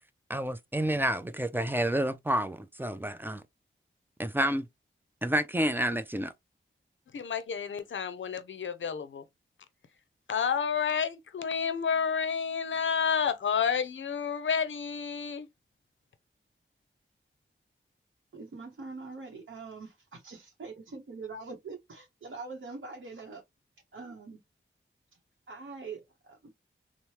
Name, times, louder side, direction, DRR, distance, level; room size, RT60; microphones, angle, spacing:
voice 1, 0.3-3.4 4.2-4.6 5.2-6.3, right 1 dB, 10° right, 0.4 m, -29 dB
voice 2, 7.1-9.2 10.3-15.5, left 6 dB, 65° left, 0.5 m, -30 dB
voice 3, 18.3-23.4 23.9-24.4 25.5-26.5, right 4 dB, 65° right, 0.7 m, -43 dB
3.1 x 2.0 x 2.8 m
cardioid pair, 55°, 21 cm